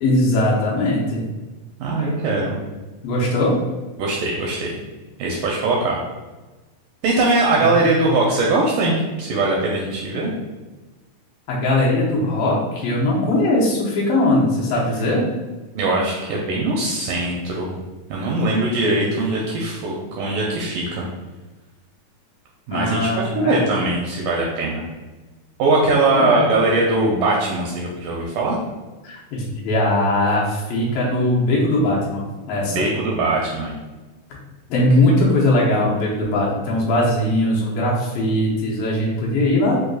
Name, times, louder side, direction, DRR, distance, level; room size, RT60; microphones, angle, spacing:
voice 1, 0.0-1.2 3.0-3.5 7.6-7.8 11.5-15.3 22.7-23.6 26.1-26.5 29.0-32.8 34.3-34.4 34.7-39.8, left 1 dB, 75° left, -4 dB, 2.4 m, -20 dB
voice 2, 1.8-2.5 4.0-4.8 5.2-6.0 7.0-10.3 15.8-17.8 18.1-21.1 22.7-24.8 25.6-28.6 32.7-33.8, right 2 dB, 80° right, -2 dB, 1.9 m, -21 dB
6.2 x 2.5 x 2.3 m, 1.2 s
omnidirectional pair, 4.2 m